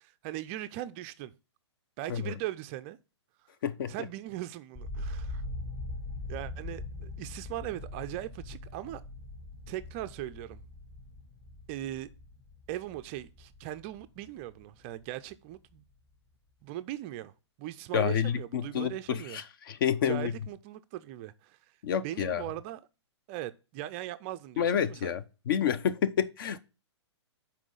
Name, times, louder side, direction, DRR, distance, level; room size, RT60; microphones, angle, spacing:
voice 1, 0.0-1.3 2.0-3.0 3.9-5.4 6.3-9.0 9.7-10.6 11.7-12.1 12.7-15.8 16.6-17.3 17.6-19.4 20.0-21.6 22.0-22.8 23.3-25.1, right 14 dB, 25° right, 0.3 m, -39 dB
voice 2, 3.6-3.9 17.9-20.3 21.8-22.4 24.6-26.6, left 8 dB, 50° left, 0.6 m, -29 dB
sound 1, 4.7-14.7 15.0-15.7, left 2 dB, 20° left, 1.6 m, -42 dB
6.0 x 4.3 x 5.3 m
figure-of-eight pair, 120°, 15 cm